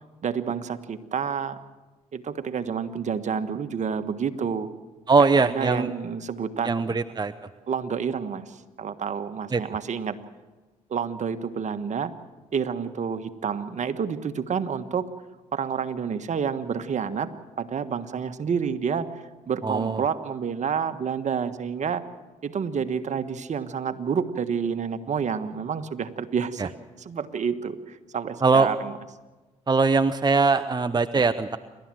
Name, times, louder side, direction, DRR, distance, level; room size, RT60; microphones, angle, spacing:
voice 1, 0.2-1.6 2.1-4.7 5.2-7.0 7.7-10.2 10.9-12.1 12.5-15.1 15.5-17.3 17.6-22.0 22.4-26.7 27.0-28.9, right 6 dB, 50° right, 10 dB, 1.4 m, -29 dB
voice 2, 5.1-5.9 6.6-7.3 9.5-9.6 19.6-20.0 26.6-26.7 28.4-28.7 29.7-31.6, right 4 dB, 25° right, 11 dB, 0.9 m, -21 dB
28.5 x 13.0 x 7.7 m, 1.2 s
supercardioid pair, 55°, 15 cm